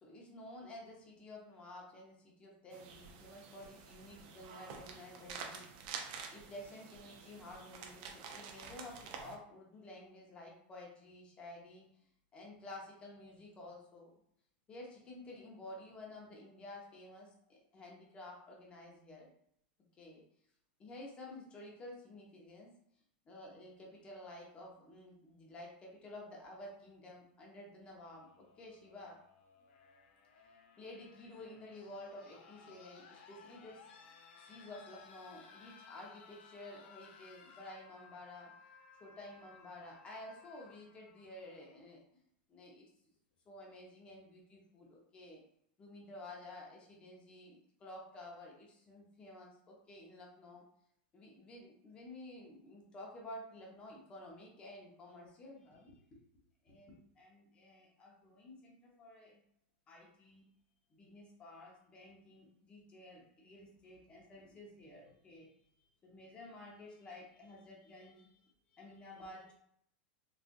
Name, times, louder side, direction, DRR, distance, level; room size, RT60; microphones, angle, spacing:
voice 1, 0.0-5.7 6.3-11.8 12.3-14.1 14.7-19.3 20.0-20.2 20.8-22.7 23.3-29.2 30.8-34.1 34.4-38.5 39.0-42.0 42.5-42.9 43.5-45.4 45.8-50.6 51.1-56.2 56.6-59.4 59.9-60.5 60.9-65.5 66.0-68.4 68.7-69.5, left 1 dB, 20° left, -2 dB, 0.8 m, -52 dB
sound 1, 2.7-9.4, right 6 dB, 50° right, 0.5 m, -49 dB
sound 2, 27.9-41.9 43.2-43.3, left 5 dB, 70° left, 0.6 m, -60 dB
3.7 x 2.4 x 2.5 m, 0.69 s
supercardioid pair, 160°, 6 cm